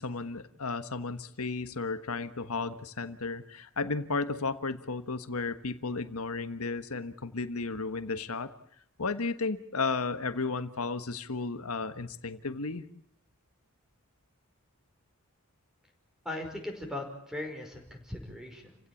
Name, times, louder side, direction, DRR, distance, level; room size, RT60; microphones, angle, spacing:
voice 1, 0.0-8.5 9.0-12.8, left 4 dB, 85° left, 10 dB, 1.4 m, -33 dB
voice 2, 16.2-18.8, left 1 dB, ahead, 3 dB, 5.2 m, -39 dB
29.5 x 16.5 x 8.5 m, 0.70 s
head